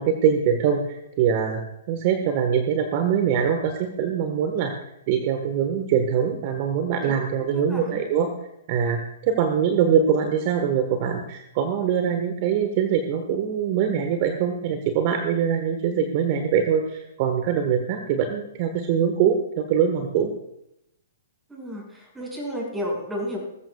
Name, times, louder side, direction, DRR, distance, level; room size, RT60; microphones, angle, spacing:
voice 1, 0.0-1.6 1.9-4.7 5.1-8.3 8.7-20.3, right 7 dB, 45° right, 6 dB, 1.4 m, -23 dB
voice 2, 7.5-8.0 21.5-23.4, equal, 10° right, -1 dB, 5.9 m, -32 dB
19.5 x 14.0 x 2.4 m, 0.81 s
figure-of-eight pair, 115°, 0 cm